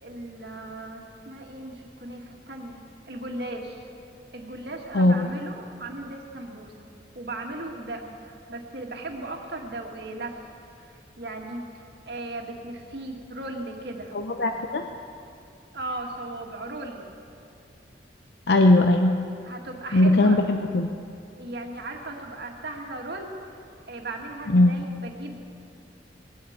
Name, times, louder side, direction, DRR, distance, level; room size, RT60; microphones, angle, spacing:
voice 1, 0.0-3.9 4.3-6.7 7.2-10.5 11.2-11.6 12.1-14.2 15.7-17.1 19.4-20.4 21.4-23.4 23.9-25.3, right 2 dB, 65° right, 1 dB, 1.9 m, -37 dB
voice 2, 4.9-5.3 14.1-14.9 18.5-19.2 19.9-20.9 24.5-24.7, left 2 dB, 70° left, 5 dB, 0.6 m, -19 dB
19.0 x 8.6 x 8.0 m, 2.5 s
head